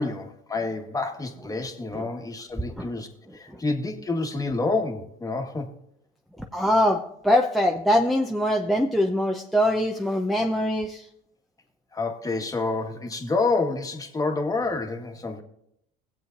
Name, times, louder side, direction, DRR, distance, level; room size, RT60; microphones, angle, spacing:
voice 1, 0.0-3.1 3.3-5.7 11.9-15.4, left 3 dB, 20° left, 4 dB, 1.6 m, -28 dB
voice 2, 3.3-3.6 6.4-11.1, equal, ahead, 2 dB, 0.8 m, -23 dB
17.5 x 7.8 x 2.6 m, 0.74 s
supercardioid pair, 85°, 18 cm